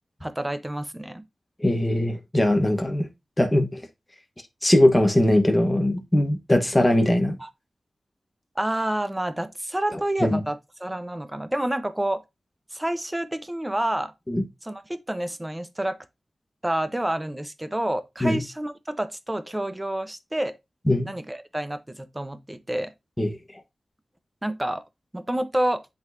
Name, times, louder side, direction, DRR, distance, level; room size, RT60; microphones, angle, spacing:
voice 1, 0.2-1.2 7.4-7.5 8.6-12.2 12.7-14.1 14.6-16.0 16.6-20.5 21.0-22.9 24.4-24.8 25.1-25.9, right 1 dB, 15° right, 0.9 m, -28 dB
voice 2, 1.6-3.1 3.4-3.7 4.6-7.4 10.2-10.4 14.3-14.4 18.2-18.4 20.9-21.1 23.2-23.3, left 1 dB, 15° left, 1.2 m, -20 dB
10.0 x 4.1 x 2.7 m
wide cardioid pair, 75°, 0 cm